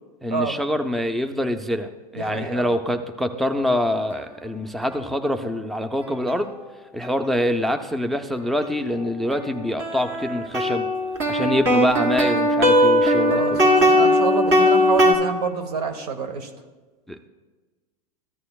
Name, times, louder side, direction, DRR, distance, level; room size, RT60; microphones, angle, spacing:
voice 1, 0.2-6.5 6.9-10.9 11.3-13.6 17.1-17.3, left 1 dB, ahead, 9 dB, 0.3 m, -25 dB
voice 2, 2.1-2.7 13.3-16.5, right 5 dB, 85° right, 7 dB, 1.1 m, -28 dB
sound 1, 8.6-8.7 9.3-15.1, left 1 dB, 50° right, 2.0 m, -19 dB
14.0 x 9.6 x 2.3 m, 1.3 s
supercardioid pair, 125°, 19 cm